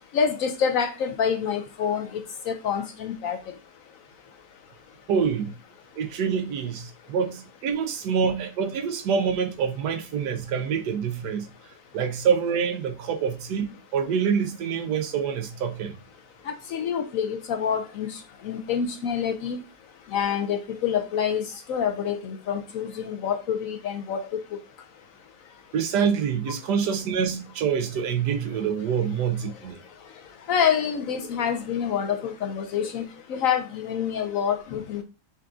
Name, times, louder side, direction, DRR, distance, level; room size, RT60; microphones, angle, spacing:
voice 1, 0.1-2.2 2.5-3.4 16.5-19.6 20.1-24.6 30.5-35.0, left 7 dB, 70° left, 0.8 m, -27 dB
voice 2, 5.1-5.6 6.0-11.5 11.9-16.0 25.7-29.8, right 7 dB, 85° right, 1.3 m, -26 dB
5.6 x 2.5 x 3.5 m
omnidirectional pair, 1.7 m